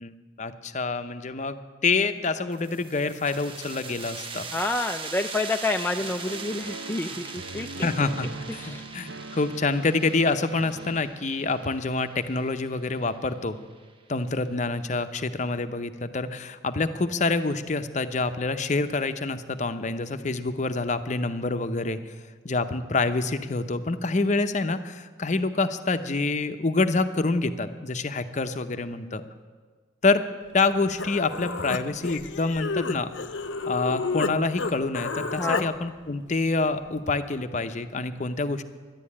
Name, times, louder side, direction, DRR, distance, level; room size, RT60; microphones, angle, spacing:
voice 1, 0.0-1.6 1.8-4.5 7.8-13.6 14.1-22.0 22.4-29.2 30.0-30.2 30.5-33.1 33.7-38.6, left 3 dB, 40° left, 9 dB, 0.7 m, -27 dB
sound 1, 2.5-13.9, right 4 dB, 30° right, 0.6 m, -41 dB
voice 2, 4.5-7.9 8.6-8.8 35.4-35.7, left 2 dB, 10° left, 4 dB, 0.3 m, -29 dB
sound 2, 6.0-11.0, right 3 dB, 65° right, 0.7 m, -41 dB
Human voice, 30.6-30.7 31.0-34.3 34.6-35.7, left 4 dB, 80° left, 0.7 m, -30 dB
12.0 x 10.5 x 8.5 m, 1.5 s
head